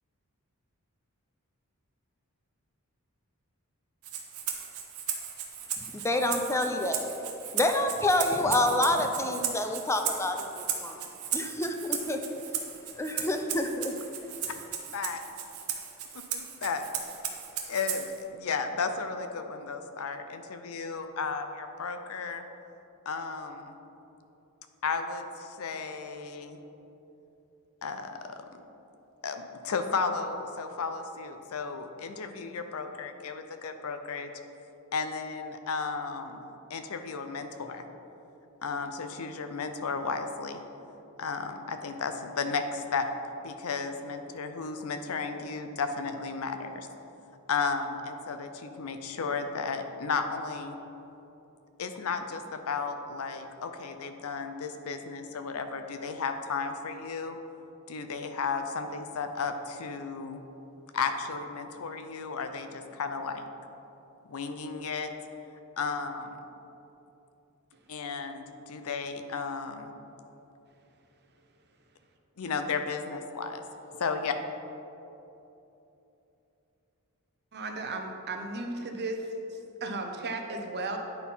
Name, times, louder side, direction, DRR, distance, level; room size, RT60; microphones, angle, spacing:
Rattle (instrument), 4.0-18.2, right 8 dB, 80° right, 0.9 m, -36 dB
voice 1, 5.9-7.1 7.5-11.0 11.3-12.2 12.9-13.9, left 1 dB, 10° left, 5 dB, 0.5 m, -28 dB
voice 2, 16.3-16.8 17.7-22.4 23.1-23.7 24.8-26.6 27.8-28.4 29.2-34.3 34.9-37.8 38.6-40.6 41.2-43.1 43.4-46.9 47.5-50.8 51.8-57.4 57.9-60.4 60.9-63.5 64.3-65.1 65.8-66.3 67.9-69.9 72.4-73.6 73.9-74.4, left 5 dB, 70° left, 7 dB, 0.6 m, -34 dB
voice 3, 77.5-81.0, right 2 dB, 50° right, 4 dB, 0.8 m, -35 dB
9.1 x 4.2 x 5.5 m, 3.0 s
head